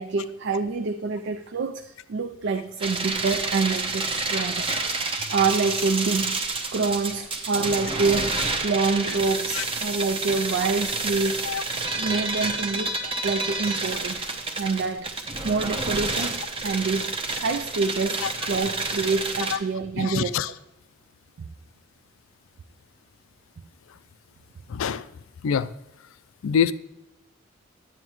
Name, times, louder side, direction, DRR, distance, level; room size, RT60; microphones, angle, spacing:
voice 1, 0.0-4.7 5.0-5.1 5.3-6.4 6.7-13.0 13.2-14.3 14.6-15.1 15.4-17.2 17.4-20.3, right 4 dB, 55° right, 8 dB, 0.4 m, -27 dB
sound 1, 2.8-19.6, right 3 dB, 25° right, 0.8 m, -29 dB
voice 2, 20.0-20.5 24.7-25.1 25.4-25.7 26.4-26.7, left 7 dB, 70° left, 15 dB, 0.4 m, -25 dB
11.0 x 9.1 x 3.1 m, 0.91 s
head